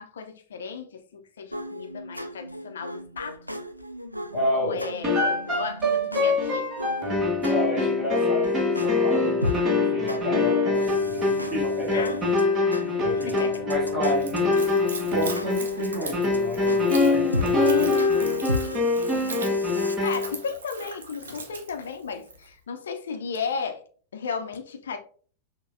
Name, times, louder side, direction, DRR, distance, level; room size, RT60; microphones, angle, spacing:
voice 1, 0.0-3.4 4.5-6.7 11.9-12.2 13.2-13.6 19.1-19.5 20.0-23.8 24.1-25.0, left 5 dB, 65° left, 0.6 m, -34 dB
sound 1, 1.5-20.0, left 1 dB, 90° right, 0.3 m, -36 dB
voice 2, 4.3-4.9 7.5-12.1 12.6-14.8 15.1-18.1, equal, 40° right, 1.7 m, -31 dB
sound 2, 5.0-20.3, left 3 dB, 20° right, 1.2 m, -24 dB
Splash splatter / Trickle dribble, 14.1-22.5, right 4 dB, 65° right, 0.7 m, -40 dB
6.0 x 2.2 x 2.5 m
figure-of-eight pair, 90°, 0 cm